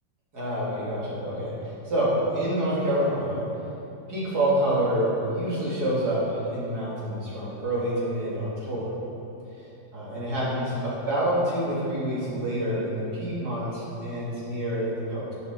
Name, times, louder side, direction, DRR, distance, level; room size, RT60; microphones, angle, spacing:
voice 1, 0.3-3.4 4.1-8.9 9.9-15.3, right 1 dB, 55° right, -8 dB, 3.3 m, -27 dB
11.5 x 8.0 x 4.6 m, 2.9 s
omnidirectional pair, 2.0 m